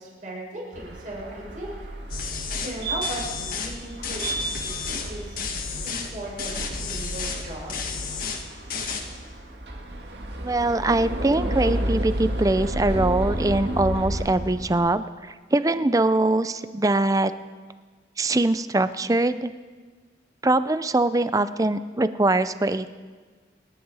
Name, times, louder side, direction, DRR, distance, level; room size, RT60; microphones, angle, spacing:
voice 1, 0.0-1.9 2.5-5.4 5.8-7.9, right 1 dB, 45° right, -4 dB, 5.6 m, -37 dB
sound 1, 0.7-14.9, right 1 dB, 65° right, 1.9 m, -32 dB
sound 2, 2.1-2.7 3.0-3.7 4.0-5.1 5.4-6.1 6.4-7.4 7.7-8.4 8.7-9.0, left 5 dB, 50° left, 2.0 m, -32 dB
voice 2, 10.4-17.3 18.2-19.5 20.4-22.9, right 2 dB, 20° right, 13 dB, 0.5 m, -22 dB
28.0 x 10.5 x 4.9 m, 1.5 s
head